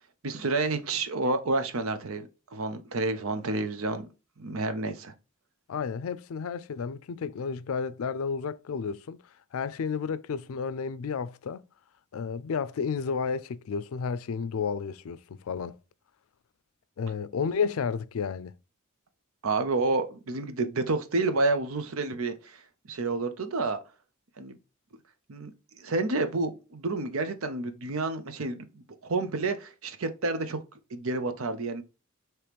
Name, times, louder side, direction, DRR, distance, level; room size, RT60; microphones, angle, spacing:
voice 1, 0.2-4.1 4.4-5.1 19.4-22.6 22.9-23.8 24.4-24.6 25.3-25.5 25.8-30.6 30.9-31.8, right 3 dB, 80° right, 0.7 m, -29 dB
voice 2, 5.7-9.2 9.5-11.6 12.1-15.8 17.0-18.5, left 6 dB, 85° left, 0.4 m, -32 dB
5.1 x 3.0 x 3.0 m
head